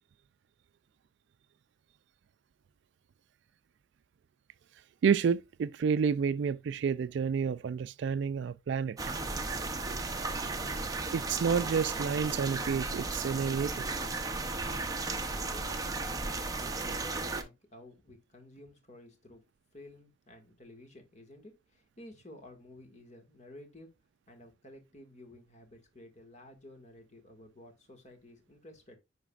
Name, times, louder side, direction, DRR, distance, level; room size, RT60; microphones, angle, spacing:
voice 1, 5.0-9.0 11.1-13.8, right 6 dB, 60° right, 0.3 m, -29 dB
sound 1, 9.0-17.4, right 3 dB, 15° right, 0.7 m, -35 dB
voice 2, 15.3-19.4 19.7-23.9 24.3-29.0, left 1 dB, 35° left, 1.8 m, -53 dB
10.5 x 4.0 x 2.4 m
head